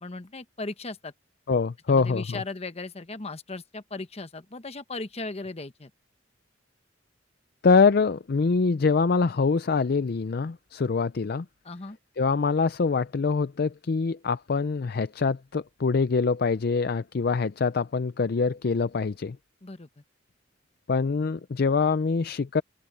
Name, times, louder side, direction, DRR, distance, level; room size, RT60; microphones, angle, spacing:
voice 1, 0.0-1.1 1.9-5.9 11.6-12.0 19.6-19.9, left 3 dB, 35° left, 1.0 m, -37 dB
voice 2, 1.5-2.4 7.6-11.5 12.2-19.4 20.9-22.6, left 4 dB, 55° left, 0.5 m, -24 dB
open air
head